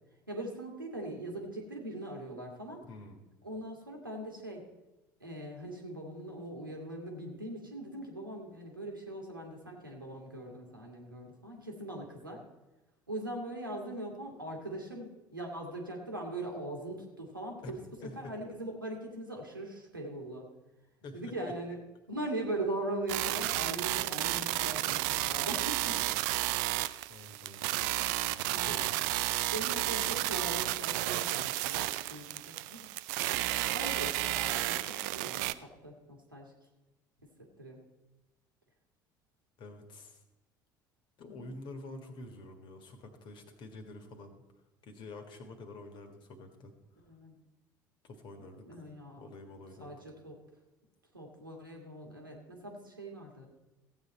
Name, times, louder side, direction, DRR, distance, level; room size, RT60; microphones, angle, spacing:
voice 1, 0.3-2.8 3.4-4.6 5.2-12.4 13.1-20.5 21.1-21.8 22.1-26.1 28.5-28.9 29.5-32.9 33.7-36.5 37.2-37.8 41.3-41.5 47.1-47.3 48.4-49.2 49.8-50.4 51.1-53.5, right 1 dB, 85° right, 0 dB, 1.8 m, -41 dB
voice 2, 2.9-3.2 17.6-18.3 21.0-21.3 27.1-27.8 28.3-29.2 39.6-40.2 41.2-44.4 44.8-46.7 48.0-48.7 49.2-49.9, left 2 dB, 45° left, 5 dB, 1.7 m, -48 dB
sound 1, 23.1-35.5, right 17 dB, 60° right, 0.4 m, -32 dB
15.5 x 8.4 x 4.3 m, 1.1 s
figure-of-eight pair, 60°, 11 cm